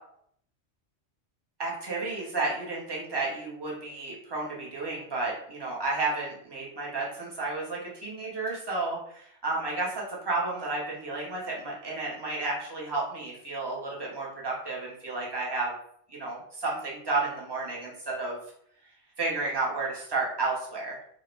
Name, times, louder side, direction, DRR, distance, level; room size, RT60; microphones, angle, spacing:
voice 1, 1.6-15.7 16.1-18.4 19.2-21.0, right 3 dB, 30° right, -3 dB, 0.5 m, -32 dB
2.4 x 2.0 x 3.0 m, 0.66 s
omnidirectional pair, 1.2 m